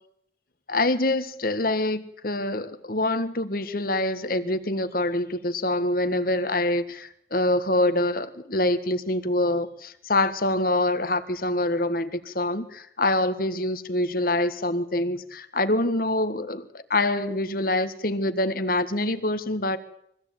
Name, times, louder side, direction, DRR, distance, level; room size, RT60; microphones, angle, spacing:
voice 1, 0.7-19.8, left 1 dB, 50° left, 11 dB, 1.6 m, -25 dB
24.0 x 16.0 x 9.1 m, 0.73 s
head